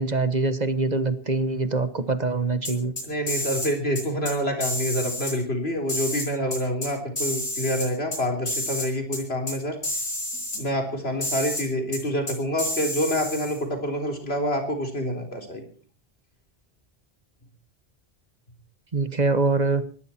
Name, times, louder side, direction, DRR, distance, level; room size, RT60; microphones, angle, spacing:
voice 1, 0.0-2.9 18.9-19.8, right 3 dB, 45° right, 11 dB, 1.4 m, -24 dB
sound 1, 2.6-3.7 4.0-4.3 4.6-5.3 5.9-6.9 7.2-8.2 8.5-8.9 9.1-9.2 9.5-9.6 9.8-10.6 11.2-11.6 11.9-12.0 12.3-13.6, left 1 dB, 60° left, 8.3 m, -30 dB
voice 2, 3.0-9.8 10.5-15.6, equal, 80° left, 4 dB, 4.1 m, -27 dB
20.5 x 15.5 x 4.5 m, 0.43 s
omnidirectional pair, 1.0 m